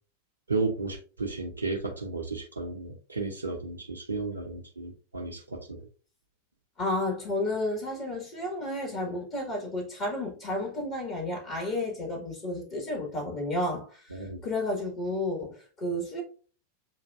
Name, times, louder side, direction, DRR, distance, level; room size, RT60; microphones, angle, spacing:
voice 1, 0.5-5.9 14.1-14.4, right 3 dB, 75° right, 0.6 m, -33 dB
voice 2, 6.8-16.2, left 1 dB, 35° left, 1.5 m, -32 dB
7.2 x 2.5 x 2.4 m
figure-of-eight pair, 90°, 0 cm